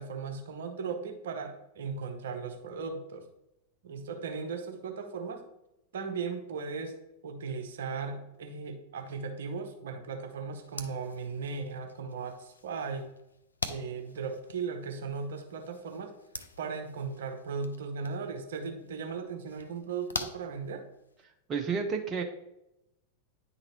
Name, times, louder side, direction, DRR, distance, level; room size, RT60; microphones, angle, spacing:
voice 1, 0.0-3.3 3.8-5.4 5.9-6.9 7.2-13.1 13.7-16.1 16.6-20.9, right 5 dB, 60° right, 6 dB, 0.8 m, -37 dB
sound 1, 10.6-21.2, left 4 dB, 75° left, 0.4 m, -45 dB
voice 2, 21.5-22.2, right 5 dB, 25° right, 3 dB, 0.6 m, -30 dB
9.7 x 3.9 x 3.0 m, 0.88 s
figure-of-eight pair, 90°, 0 cm